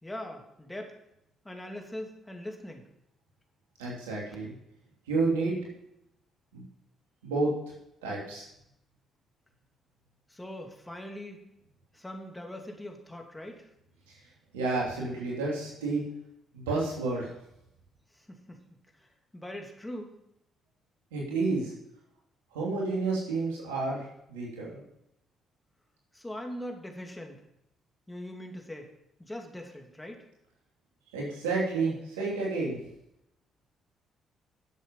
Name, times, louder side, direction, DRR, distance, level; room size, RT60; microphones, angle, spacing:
voice 1, 0.0-1.0 1.4-2.8 10.3-11.4 11.9-13.7 18.1-18.6 18.9-20.1 26.1-27.5 28.1-28.9 29.2-30.2, left 1 dB, 15° left, 2 dB, 2.5 m, -41 dB
voice 2, 3.8-4.5 5.1-5.6 6.5-6.6 7.2-7.5 8.0-8.4 14.5-16.0 16.5-17.3 21.1-21.7 22.5-24.8 31.1-32.8, right 3 dB, 90° right, -4 dB, 2.9 m, -30 dB
10.5 x 7.6 x 5.5 m, 0.81 s
hypercardioid pair, 50°, 0 cm